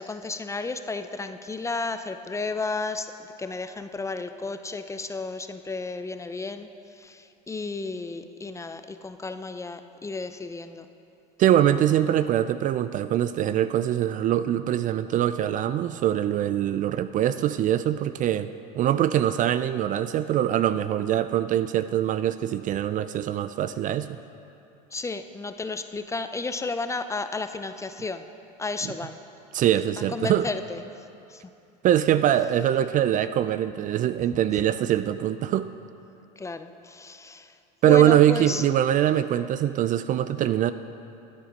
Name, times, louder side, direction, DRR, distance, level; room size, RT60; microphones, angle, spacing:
voice 1, 0.0-3.1 3.4-10.9 24.9-28.2 28.6-29.2 30.1-30.8 31.3-31.4 36.4-37.6 37.9-38.6, left 3 dB, 15° left, 9 dB, 0.5 m, -33 dB
voice 2, 11.4-24.2 28.8-28.9 29.5-30.5 31.8-35.7 37.8-40.7, right 11 dB, 40° right, 13 dB, 0.4 m, -23 dB
13.0 x 8.5 x 5.1 m, 2.7 s
supercardioid pair, 90°, 20 cm